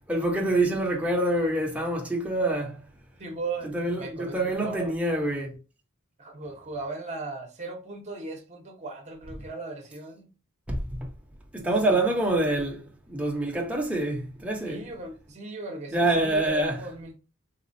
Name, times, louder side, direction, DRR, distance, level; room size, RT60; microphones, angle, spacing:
voice 1, 0.1-2.8 3.7-5.6 10.7-11.0 11.5-14.8 15.9-16.8, right 1 dB, 5° right, 0.9 m, -26 dB
voice 2, 3.2-4.9 6.2-10.3 11.6-12.0 12.4-12.6 14.6-17.2, right 3 dB, 35° right, 0.9 m, -38 dB
4.1 x 2.4 x 2.6 m
head